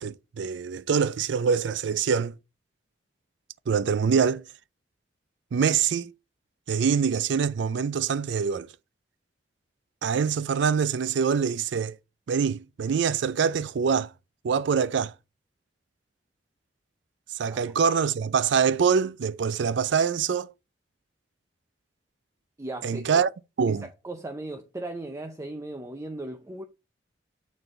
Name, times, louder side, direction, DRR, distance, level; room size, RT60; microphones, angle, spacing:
voice 1, 0.0-2.3 3.7-4.4 5.5-6.1 6.7-8.7 10.0-12.0 12.3-14.1 14.4-15.1 17.3-20.5 22.8-23.3 23.6-23.9, right 6 dB, 70° right, 0.4 m, -24 dB
voice 2, 22.6-23.2 23.7-26.6, right 2 dB, 15° right, 0.5 m, -37 dB
6.8 x 4.1 x 3.7 m
head